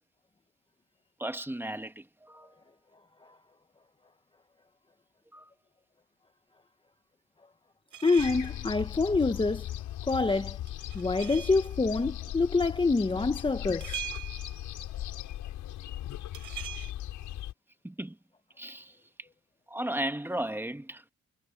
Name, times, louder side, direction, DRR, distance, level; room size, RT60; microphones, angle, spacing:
voice 1, 1.2-2.5 5.3-5.5 17.8-18.2 18.6-19.0 19.7-21.0, right 1 dB, 5° right, 1.7 m, -35 dB
sound 1, 7.9-8.7 10.7-11.7 13.8-14.7 16.3-16.9, right 11 dB, 80° right, 5.5 m, -41 dB
voice 2, 8.0-9.7 10.0-10.6 10.9-14.0, left 3 dB, 15° left, 1.1 m, -26 dB
sound 2, 8.2-17.5, left 13 dB, 85° left, 6.5 m, -38 dB
cardioid pair, 90°, 30 cm